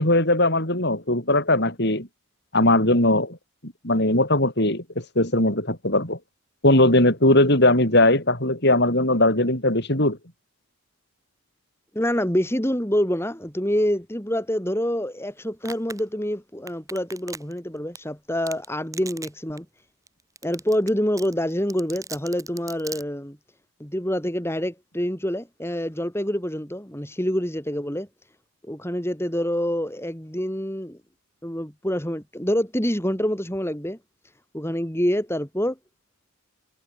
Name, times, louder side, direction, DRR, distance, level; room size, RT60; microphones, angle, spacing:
voice 1, 0.0-2.1 2.5-3.4 3.6-6.2 6.6-10.2, left 1 dB, 50° left, 6.6 m, -19 dB
voice 2, 11.9-19.7 20.4-23.4 23.8-28.1 28.6-31.0 31.4-34.0 34.5-35.8, equal, 10° left, 3.7 m, -26 dB
Domestic sounds home sounds, 15.6-16.0 16.7-17.6 17.9-18.0 18.5-18.6 18.9-19.3 19.6-19.7 20.1-20.2 20.4-20.9 21.2-23.0, right 4 dB, 15° right, 7.1 m, -36 dB
head